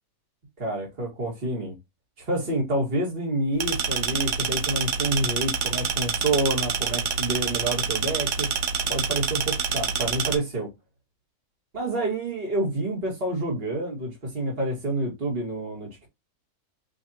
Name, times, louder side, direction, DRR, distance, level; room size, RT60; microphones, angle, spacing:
voice 1, 0.6-1.7 2.2-8.5 8.9-10.7 11.7-15.9, right 1 dB, 35° right, 2.4 m, -28 dB
sound 1, 3.6-10.4, right 6 dB, 85° right, 1.4 m, -27 dB
5.2 x 3.2 x 2.8 m
omnidirectional pair, 1.7 m